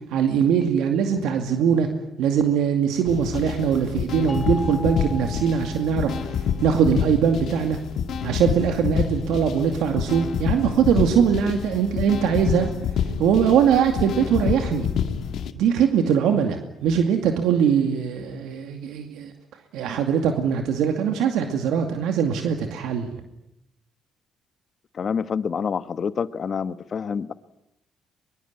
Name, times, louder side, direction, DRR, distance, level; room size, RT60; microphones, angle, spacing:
voice 1, 0.1-1.9 2.2-7.8 8.2-12.7 13.2-14.9 15.6-19.3 19.7-23.1, right 7 dB, 90° right, 5 dB, 2.4 m, -21 dB
sound 1, 3.1-15.5, left 8 dB, 70° left, 2.2 m, -28 dB
sound 2, 4.3-6.5, left 2 dB, 20° left, 2.1 m, -38 dB
voice 2, 24.9-27.3, left 6 dB, 50° left, 13 dB, 1.3 m, -27 dB
23.5 x 23.0 x 9.7 m, 0.83 s
cardioid pair, 90°, 0 cm